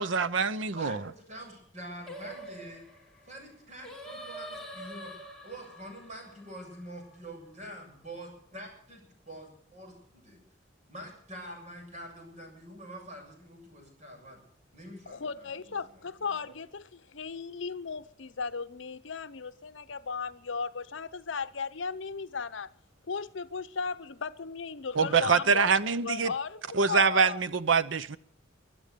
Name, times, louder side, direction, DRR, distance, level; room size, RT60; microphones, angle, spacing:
voice 1, 0.0-1.0 25.0-26.3 26.7-28.2, right 5 dB, 75° right, 0.7 m, -25 dB
voice 2, 0.7-2.8 3.3-5.1 5.4-10.4 10.9-14.4 14.7-16.6, right 1 dB, 40° right, 7.5 m, -46 dB
Singing, 2.1-7.4, right 1 dB, 5° left, 2.9 m, -45 dB
voice 3, 15.1-22.7 23.1-25.7 26.0-26.6 26.9-27.4, left 5 dB, 75° left, 0.7 m, -36 dB
24.0 x 8.8 x 6.8 m
head